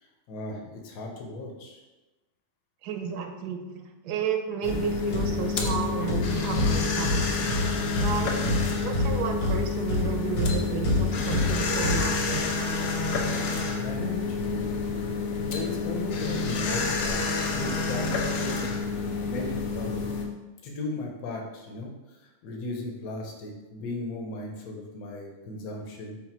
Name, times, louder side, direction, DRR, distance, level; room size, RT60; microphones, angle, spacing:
voice 1, 0.3-1.8 13.7-14.7 15.5-17.2 17.5-18.7 18.9-20.0 20.6-21.9 22.4-26.2, left 2 dB, 65° left, 0 dB, 1.2 m, -36 dB
voice 2, 2.8-7.6 8.0-8.3 8.8-12.5, right 7 dB, 90° right, 5 dB, 1.2 m, -32 dB
sound 1, 4.6-20.3, left 4 dB, 85° left, 1.2 m, -29 dB
sound 2, 4.7-12.7, left 2 dB, 40° left, 0.5 m, -29 dB
5.7 x 2.1 x 4.3 m, 1.1 s
omnidirectional pair, 1.7 m